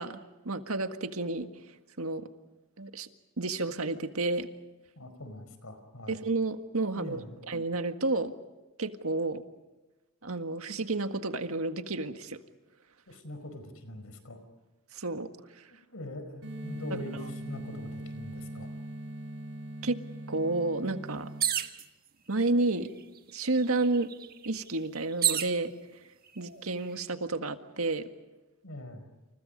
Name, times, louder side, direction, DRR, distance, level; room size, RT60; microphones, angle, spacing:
voice 1, 0.0-1.5 2.0-2.3 2.8-3.1 3.4-4.5 6.1-8.3 8.8-9.4 10.2-12.4 14.9-15.3 15.5-15.6 16.9-17.0 19.8-20.0 20.3-21.3 22.3-22.9 23.3-24.1 24.4-25.7 26.3-28.1, right 2 dB, 90° right, 7 dB, 1.7 m, -31 dB
voice 2, 5.0-6.2 7.0-7.4 13.1-14.4 15.7-18.7 28.6-29.1, left 1 dB, 85° left, 9 dB, 4.8 m, -43 dB
sound 1, 16.4-21.4, right 1 dB, 65° right, 5.9 m, -41 dB
sound 2, 21.4-21.8 22.8-22.9 23.2-25.6 26.3-26.8, right 10 dB, 45° right, 1.4 m, -30 dB
29.5 x 29.0 x 5.3 m, 1.1 s
head